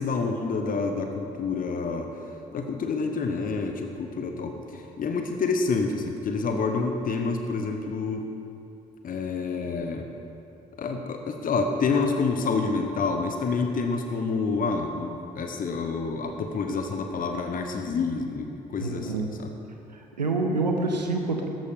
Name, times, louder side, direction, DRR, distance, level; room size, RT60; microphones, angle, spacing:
voice 1, 0.0-2.1 2.5-8.2 9.0-10.1 10.8-19.5, left 4 dB, 40° left, 4 dB, 1.2 m, -28 dB
voice 2, 18.8-19.4 20.2-21.5, right 3 dB, 85° right, 3 dB, 0.9 m, -27 dB
14.0 x 11.5 x 5.0 m, 2.7 s
figure-of-eight pair, 45°, 21 cm